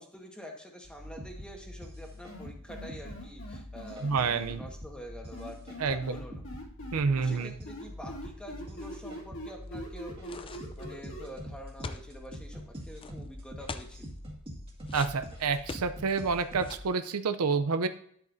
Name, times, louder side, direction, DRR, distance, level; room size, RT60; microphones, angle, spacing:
voice 1, 0.0-6.4 7.1-14.0, equal, 5° left, 1 dB, 1.4 m, -47 dB
sound 1, 0.8-16.8, equal, 25° right, 1.9 m, -45 dB
sound 2, 2.3-4.5 5.3-7.4 7.7-11.2, equal, 60° left, 3.1 m, -43 dB
voice 2, 4.0-4.6 5.8-6.0 6.9-7.5 14.9-17.9, right 5 dB, 75° right, 10 dB, 0.6 m, -28 dB
sound 3, 10.2-10.9 11.8-12.4 13.0-13.1 13.7-13.9 14.9-16.2 16.6-16.9, left 4 dB, 25° left, 0.4 m, -42 dB
11.0 x 7.9 x 2.7 m, 0.64 s
head